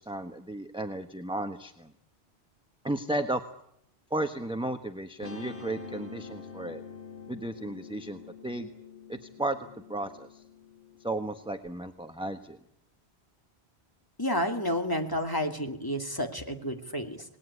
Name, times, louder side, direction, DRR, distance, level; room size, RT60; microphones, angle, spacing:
voice 1, 0.0-1.9 2.8-3.4 4.1-6.8 7.3-8.7 9.1-10.4 11.0-12.6, right 1 dB, 5° right, 6 dB, 1.2 m, -34 dB
Guitar, 5.2-11.7, left 5 dB, 90° left, 4.0 m, -46 dB
voice 2, 14.2-17.2, equal, 20° left, 4 dB, 2.5 m, -30 dB
27.5 x 20.0 x 9.9 m, 0.79 s
omnidirectional pair, 1.1 m